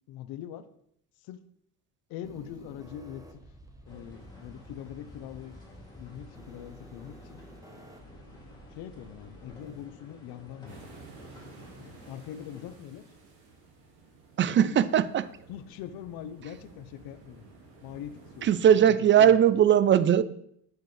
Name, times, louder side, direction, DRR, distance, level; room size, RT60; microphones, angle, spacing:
voice 1, 0.1-0.7 1.2-1.4 2.1-3.4 3.9-5.6 5.9-7.4 7.7-11.0 11.8-13.1 14.6-14.8 15.5-17.4 17.8-19.6, left 10 dB, 75° left, 0.8 m, -43 dB
sound 1, 2.2-9.9, right 1 dB, 10° right, 0.9 m, -51 dB
sound 2, 3.8-12.8, left 1 dB, 10° left, 2.5 m, -53 dB
sound 3, 10.6-18.7, right 3 dB, 85° right, 2.1 m, -53 dB
voice 2, 14.4-15.3 18.4-20.2, right 9 dB, 35° right, 0.4 m, -20 dB
8.6 x 6.5 x 3.3 m
cardioid pair, 95°, 37 cm